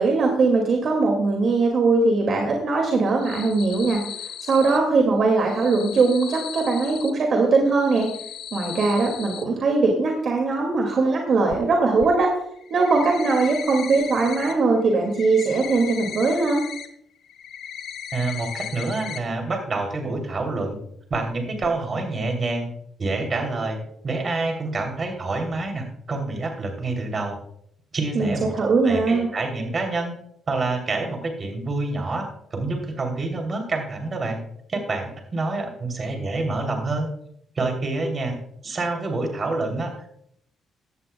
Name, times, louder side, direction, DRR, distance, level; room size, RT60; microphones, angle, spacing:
voice 1, 0.0-4.0 4.4-8.1 8.5-12.3 12.7-16.6 28.1-29.3, right 3 dB, 55° right, 2 dB, 2.2 m, -20 dB
sound 1, 3.0-4.8 5.4-7.1 7.7-9.4 11.5-11.6 12.0-12.1 12.5-14.5 14.8-16.9 17.2-19.2 19.5-19.6 20.0-20.1 21.1-21.3 21.6-21.7, left 8 dB, 75° left, 1.2 m, -36 dB
voice 2, 18.1-20.8 21.1-22.7 23.0-27.4 27.9-28.5 28.8-30.1 30.5-34.4 34.7-37.1 37.6-38.4 38.6-40.1, right 3 dB, 40° right, 3 dB, 3.1 m, -27 dB
16.0 x 11.0 x 2.3 m, 0.70 s
cardioid pair, 90°, 0 cm